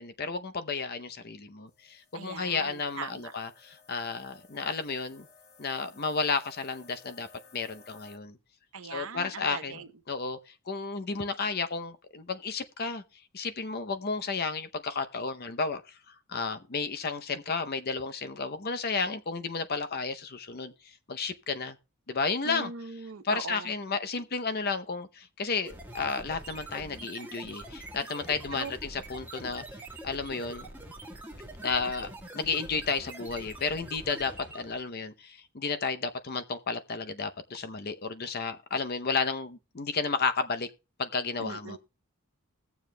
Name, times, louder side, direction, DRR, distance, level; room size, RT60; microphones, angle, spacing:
voice 1, 0.0-5.3 5.6-7.3 7.5-8.4 8.9-10.4 10.7-13.0 13.3-20.7 21.1-21.8 22.1-22.7 23.2-29.6 30.0-30.7 31.6-32.1 32.3-40.7 41.0-41.8, left 4 dB, 45° left, 0.7 m, -32 dB
sound 1, 1.7-8.2, left 5 dB, 65° left, 1.7 m, -58 dB
voice 2, 2.1-3.3 8.7-9.9 22.4-23.7 28.5-28.7 41.4-41.8, right 5 dB, 65° right, 0.8 m, -40 dB
sound 2, 25.6-34.8, right 1 dB, 5° right, 1.4 m, -44 dB
20.5 x 7.2 x 2.2 m
head